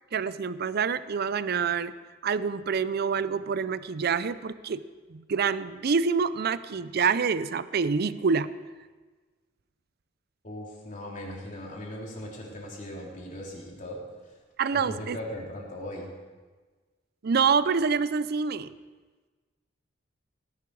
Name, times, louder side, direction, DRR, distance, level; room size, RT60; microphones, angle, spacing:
voice 1, 0.1-1.9 2.2-4.8 5.1-8.5 14.6-15.2 17.2-18.7, right 5 dB, 55° right, 15 dB, 0.5 m, -26 dB
voice 2, 10.4-14.4 14.7-16.1, left 1 dB, 40° left, -2 dB, 3.1 m, -39 dB
17.5 x 11.0 x 4.7 m, 1.4 s
head